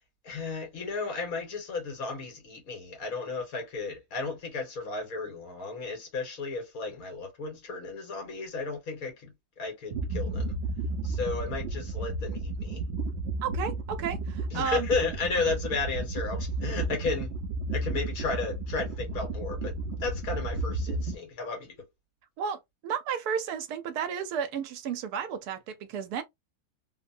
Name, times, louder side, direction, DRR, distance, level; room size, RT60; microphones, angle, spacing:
voice 1, 0.2-10.6 11.0-12.8 14.5-17.3 17.7-19.7 20.0-21.8, left 4 dB, 65° left, 1.6 m, -33 dB
sound 1, 9.9-21.2, right 2 dB, 65° right, 0.7 m, -33 dB
voice 2, 13.4-14.9 22.4-26.2, right 7 dB, 80° right, 1.1 m, -33 dB
3.2 x 2.1 x 2.5 m
omnidirectional pair, 1.6 m